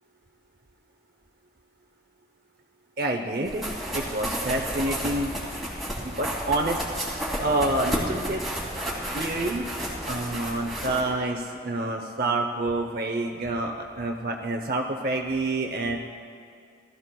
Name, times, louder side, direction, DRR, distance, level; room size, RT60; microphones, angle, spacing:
voice 1, 3.0-5.3 6.0-6.8 7.4-8.4 8.7-8.8 9.1-9.7 10.1-16.0, right 2 dB, 55° right, 3 dB, 0.6 m, -28 dB
sound 1, 3.4-11.0, equal, ahead, 2.4 m, -31 dB
19.5 x 14.0 x 2.3 m, 2.3 s
head